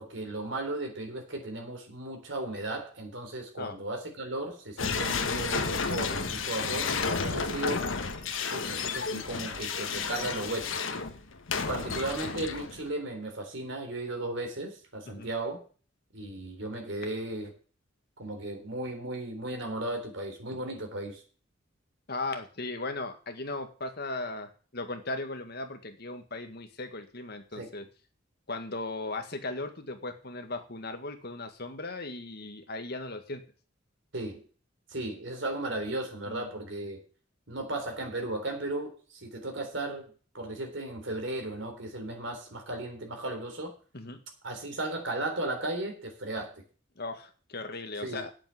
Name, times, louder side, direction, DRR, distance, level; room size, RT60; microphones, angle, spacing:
voice 1, 0.0-7.9 8.5-10.8 11.7-15.6 16.1-17.5 18.2-21.2 27.6-27.7 34.1-34.4 34.9-37.0 37.5-43.7 44.4-46.5 48.0-48.2, right 2 dB, 65° right, 3 dB, 3.7 m, -35 dB
sound 1, 4.8-12.9, left 5 dB, 75° left, 1.4 m, -32 dB
voice 2, 22.1-27.9 28.5-33.4 36.3-36.5 43.9-44.2 47.0-48.3, left 2 dB, 50° left, 6 dB, 1.8 m, -37 dB
8.7 x 8.7 x 7.6 m, 0.39 s
head